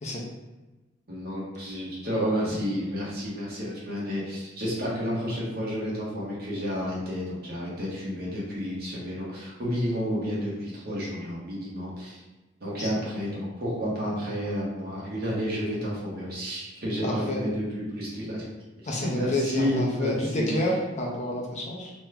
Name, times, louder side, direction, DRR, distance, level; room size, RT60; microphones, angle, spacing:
voice 1, 1.1-12.2 12.6-18.4 19.1-20.5, equal, 55° right, -6 dB, 1.1 m, -30 dB
voice 2, 17.0-17.4 18.9-21.9, left 1 dB, 40° left, -2 dB, 0.6 m, -29 dB
2.9 x 2.3 x 3.4 m, 1.1 s
head